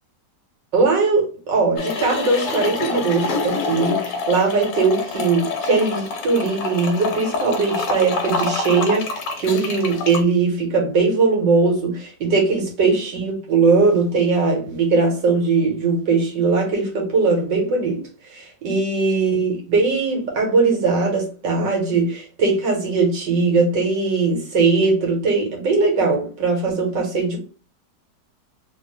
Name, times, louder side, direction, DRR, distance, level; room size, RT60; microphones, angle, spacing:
voice 1, 0.7-18.0 18.3-27.4, right 4 dB, 85° right, 2.0 m, -20 dB
sound 1, 1.8-10.2, left 4 dB, 80° left, 1.5 m, -26 dB
3.8 x 2.8 x 3.1 m
omnidirectional pair, 1.9 m